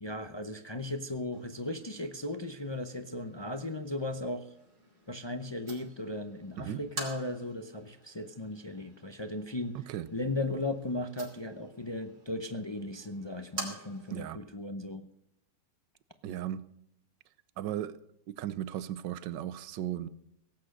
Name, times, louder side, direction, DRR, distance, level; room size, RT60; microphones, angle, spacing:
voice 1, 0.0-4.5 5.1-9.8 10.1-15.1, left 2 dB, 35° left, 8 dB, 0.4 m, -36 dB
sound 1, 1.3-14.3, right 2 dB, 60° right, 3.5 m, -48 dB
voice 2, 16.2-16.6 17.6-18.0 18.3-20.1, right 11 dB, 90° right, 16 dB, 1.4 m, -36 dB
17.5 x 8.7 x 6.5 m, 0.74 s
omnidirectional pair, 1.9 m